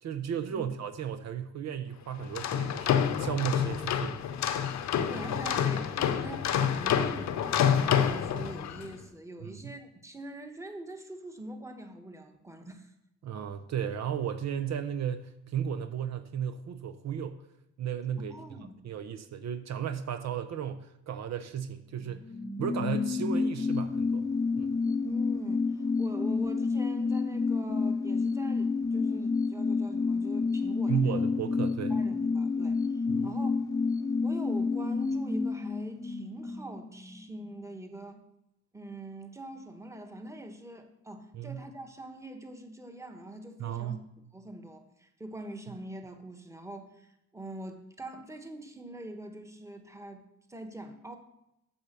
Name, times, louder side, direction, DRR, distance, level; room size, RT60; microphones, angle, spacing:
voice 1, 0.0-4.2 9.4-9.7 13.2-17.4 17.8-18.4 18.8-22.3 22.6-24.3 24.6-24.7 30.9-31.9 33.1-33.3 41.3-41.6 43.6-44.0, right 8 dB, 60° right, 7 dB, 0.8 m, -34 dB
sound 1, 2.2-8.9, left 8 dB, 65° left, 0.8 m, -28 dB
voice 2, 4.8-12.9 18.2-18.8 24.8-31.2 31.9-33.9 34.2-38.2 38.7-44.0 44.3-51.2, right 1 dB, 10° right, 5 dB, 1.3 m, -44 dB
sound 2, 22.1-37.3 37.6-37.7, left 4 dB, 10° left, 0.6 m, -29 dB
7.9 x 5.8 x 6.7 m, 0.86 s
cardioid pair, 90°, 30 cm